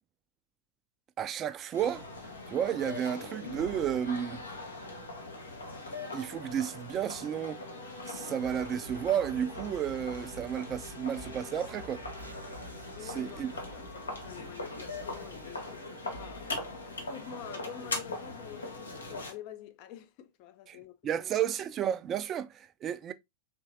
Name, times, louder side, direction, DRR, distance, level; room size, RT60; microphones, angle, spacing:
voice 1, 1.2-2.1 2.5-4.4 6.1-7.6 8.1-12.0 13.0-13.5 20.7-20.8 21.0-23.1, right 9 dB, 30° right, 0.4 m, -32 dB
sound 1, 1.7-19.3, left 2 dB, 75° left, 0.9 m, -41 dB
sound 2, 6.2-14.6, left 2 dB, 10° left, 0.8 m, -57 dB
sound 3, 8.4-17.7, right 1 dB, 85° right, 0.7 m, -50 dB
voice 2, 12.9-21.3, left 10 dB, 45° left, 0.5 m, -48 dB
4.3 x 3.1 x 2.6 m
figure-of-eight pair, 90°, 0 cm